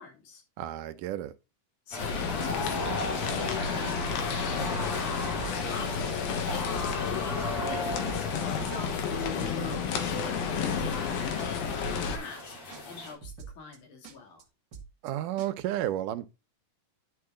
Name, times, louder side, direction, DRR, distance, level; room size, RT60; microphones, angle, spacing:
voice 1, 0.0-0.4 1.9-8.3 8.6-12.6 12.8-14.4, left 5 dB, 60° left, 3.9 m, -45 dB
voice 2, 0.6-1.3 15.0-16.3, right 12 dB, 80° right, 2.1 m, -32 dB
sound 1, 1.9-13.1, left 2 dB, 45° left, 3.1 m, -36 dB
sound 2, 2.0-12.2, left 6 dB, 90° left, 3.0 m, -32 dB
sound 3, 3.4-3.8 4.0-4.4 4.7-4.8 5.1-5.8 6.0-6.4 6.7-7.1 7.4-9.1 9.4-9.8 10.0-11.1 11.4-11.8 12.0-12.4 12.7-12.8 13.1-13.8 14.0-14.4 14.7-15.1 15.4-15.5, right 6 dB, 50° right, 1.5 m, -45 dB
10.5 x 5.1 x 3.7 m
omnidirectional pair, 4.0 m